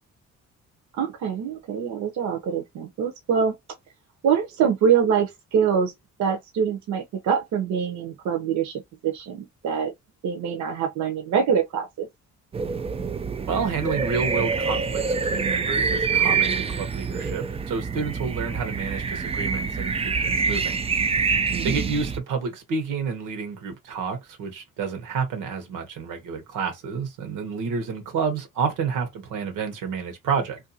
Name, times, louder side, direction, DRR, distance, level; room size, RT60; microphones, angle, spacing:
voice 1, 0.9-3.5 4.2-5.9 6.2-9.9 10.2-12.1 21.5-21.9, right 7 dB, 70° right, 0.7 m, -24 dB
sound 1, 12.5-22.2, right 5 dB, 20° right, 0.3 m, -26 dB
voice 2, 13.5-20.8 21.6-30.6, right 5 dB, 90° right, 1.0 m, -29 dB
2.6 x 2.3 x 2.7 m
cardioid pair, 90°, 30 cm